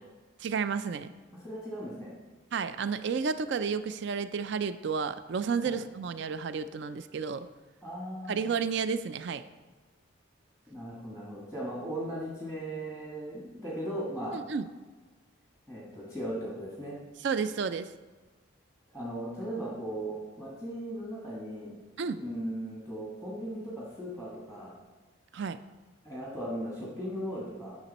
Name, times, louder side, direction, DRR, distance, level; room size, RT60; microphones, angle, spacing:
voice 1, 0.4-1.1 2.5-7.5 8.3-9.4 14.3-14.7 17.2-17.9 22.0-22.2 25.3-25.6, right 5 dB, 55° right, 12 dB, 0.4 m, -31 dB
voice 2, 1.3-2.1 5.6-5.8 7.8-8.4 10.7-14.4 15.7-17.0 18.9-21.8 22.1-24.7 26.0-27.8, right 1 dB, 10° right, -5 dB, 1.6 m, -37 dB
11.0 x 6.1 x 4.1 m, 1.3 s
head